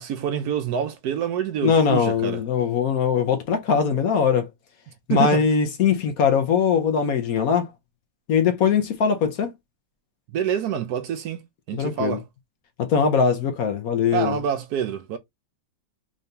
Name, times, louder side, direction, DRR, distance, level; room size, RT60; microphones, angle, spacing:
voice 1, 0.0-2.4 5.1-5.4 10.3-12.2 14.1-15.2, right 8 dB, 70° right, 1.0 m, -26 dB
voice 2, 1.6-4.5 5.1-7.7 8.3-9.5 11.7-12.2 12.8-14.4, left 6 dB, 65° left, 1.1 m, -21 dB
3.8 x 2.7 x 3.3 m
omnidirectional pair, 1.9 m